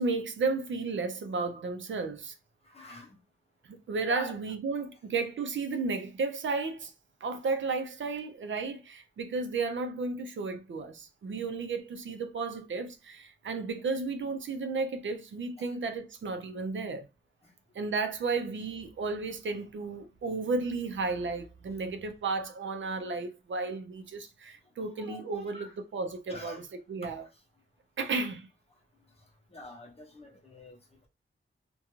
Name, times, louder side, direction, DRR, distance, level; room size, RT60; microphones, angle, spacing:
voice 1, 0.0-2.3 3.7-6.9 7.2-17.1 17.7-26.6 26.9-27.2 28.0-28.5, right 4 dB, 65° right, 0.5 m, -33 dB
voice 2, 2.6-3.2 4.1-4.3 5.1-5.2 15.6-15.8 17.4-17.5 18.3-18.4 24.8-25.8 26.3-26.7 27.0-27.4 29.2-31.1, left 1 dB, 30° left, 0.7 m, -47 dB
2.4 x 2.2 x 2.9 m
wide cardioid pair, 140°, 21 cm